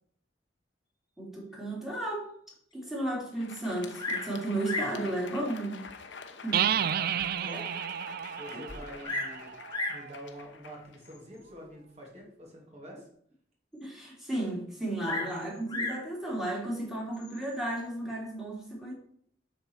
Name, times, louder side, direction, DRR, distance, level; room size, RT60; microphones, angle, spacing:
voice 1, 1.2-2.3 2.7-5.8 6.4-6.6 13.7-18.9, right 1 dB, ahead, -4 dB, 2.7 m, -34 dB
Crowd, 3.2-11.7, left 5 dB, 85° left, 0.9 m, -47 dB
Bird vocalization bird call bird song, 4.0-4.3 4.6-5.0 5.9-6.0 6.6-6.7 7.2-7.3 7.5-7.6 8.7-9.4 9.7-10.1 11.0-11.4 15.0-16.1 17.1-17.6, left 2 dB, 25° left, 1.4 m, -35 dB
voice 2, 6.5-7.7 8.4-9.5 9.9-13.1 15.1-15.2, equal, 40° right, -1 dB, 2.8 m, -46 dB
sound 1, 6.5-10.2, right 9 dB, 55° right, 0.4 m, -31 dB
7.7 x 4.3 x 7.0 m, 0.65 s
head